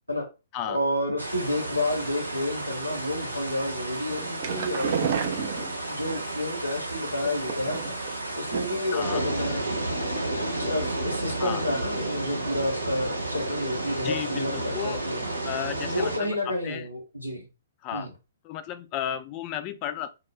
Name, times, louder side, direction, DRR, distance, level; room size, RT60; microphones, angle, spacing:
voice 1, 0.6-5.3 5.5-9.6 10.6-15.3 15.8-17.5 17.9-18.1, left 1 dB, 85° left, 0.8 m, -30 dB
sound 1, 1.2-16.2, right 2 dB, 80° right, 0.9 m, -32 dB
sound 2, 4.1-6.2 7.2-8.1 8.5-8.9 9.2-9.3 9.7-9.8, right 7 dB, 45° right, 0.4 m, -31 dB
voice 2, 5.4-5.7 8.9-9.2 11.4-11.6 14.0-15.0 15.4-16.9 17.8-18.1 18.4-20.1, left 10 dB, 30° left, 0.3 m, -34 dB
2.3 x 2.0 x 3.2 m
figure-of-eight pair, 120°, 0 cm